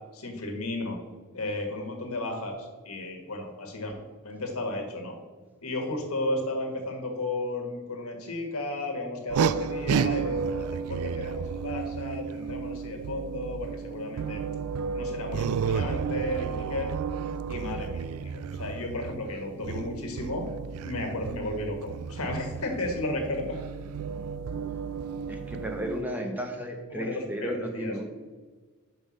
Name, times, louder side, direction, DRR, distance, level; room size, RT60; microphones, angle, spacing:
voice 1, 0.1-1.0 1.3-3.9 4.2-5.2 5.6-14.4 14.9-16.9 17.5-20.4 20.8-23.6 26.9-28.0, left 2 dB, 70° left, 2 dB, 1.5 m, -34 dB
sound 1, 9.3-26.0, right 6 dB, 75° right, 0.3 m, -32 dB
voice 2, 25.3-28.1, equal, 10° right, 3 dB, 0.7 m, -34 dB
5.6 x 5.2 x 6.3 m, 1.4 s
head